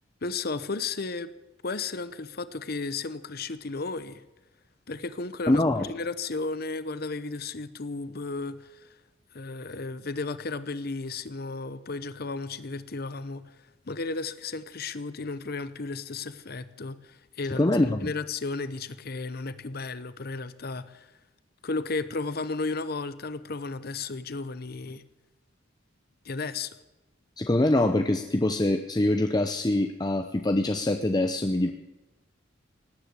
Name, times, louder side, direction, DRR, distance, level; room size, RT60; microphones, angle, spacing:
voice 1, 0.2-1.3 1.6-4.2 4.9-8.9 9.3-13.5 13.9-21.1 21.6-25.0 26.2-26.7, left 3 dB, 50° left, 14 dB, 0.9 m, -34 dB
voice 2, 5.5-5.9 17.5-18.1 27.4-31.7, left 1 dB, 20° left, 6 dB, 0.7 m, -24 dB
18.0 x 10.0 x 8.2 m, 1.0 s
head